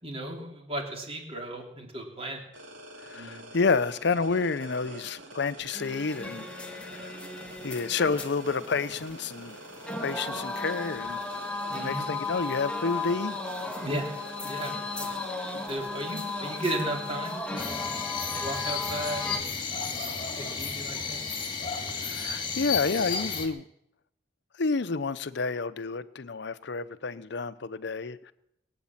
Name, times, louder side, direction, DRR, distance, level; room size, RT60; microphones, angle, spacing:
voice 1, 0.0-2.4 3.1-3.4 11.7-12.1 13.8-14.1 14.4-15.1 15.7-17.9 18.3-19.5 19.9-20.0 20.3-21.2, right 1 dB, 30° right, 3.1 m, -35 dB
sound 1, 2.5-17.4, right 1 dB, 70° right, 2.6 m, -46 dB
voice 2, 3.0-6.5 6.8-7.1 7.6-9.6 10.0-11.2 11.8-13.4 22.0-23.6 24.6-28.3, left 4 dB, 65° left, 0.7 m, -29 dB
sound 2, 5.7-19.4, left 3 dB, 5° left, 1.4 m, -36 dB
sound 3, 17.6-23.5, left 5 dB, 25° left, 2.3 m, -33 dB
21.5 x 8.6 x 7.3 m
head